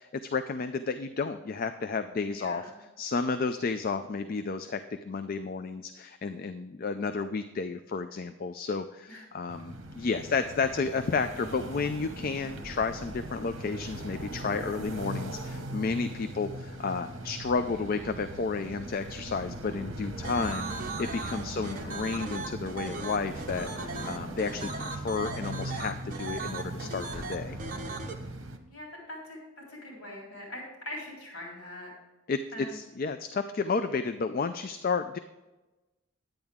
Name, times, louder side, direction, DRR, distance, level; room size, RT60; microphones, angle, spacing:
voice 1, 0.0-27.6 32.3-32.4 32.7-35.2, left 4 dB, 40° left, 9 dB, 0.3 m, -32 dB
voice 2, 2.2-2.8 9.1-9.2 21.5-22.1 28.7-29.4 29.7-31.9 32.5-32.8, left 1 dB, 75° left, -3 dB, 3.7 m, -42 dB
sound 1, 9.5-28.6, right 1 dB, 60° right, 1.1 m, -40 dB
sound 2, 20.2-28.1, right 3 dB, 40° right, 0.9 m, -38 dB
10.5 x 9.0 x 3.6 m, 1.1 s
head